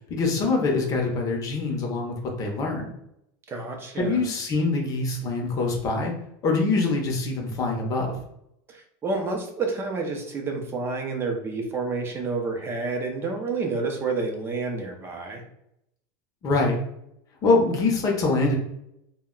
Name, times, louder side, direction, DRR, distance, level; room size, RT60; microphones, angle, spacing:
voice 1, 0.1-2.9 4.0-6.1 6.4-8.2 16.4-16.8 17.4-18.6, left 3 dB, 30° left, 0 dB, 0.6 m, -24 dB
voice 2, 3.5-4.2 8.7-15.4, right 3 dB, 20° right, 3 dB, 0.5 m, -29 dB
2.2 x 2.1 x 3.6 m, 0.79 s
supercardioid pair, 150°, 13 cm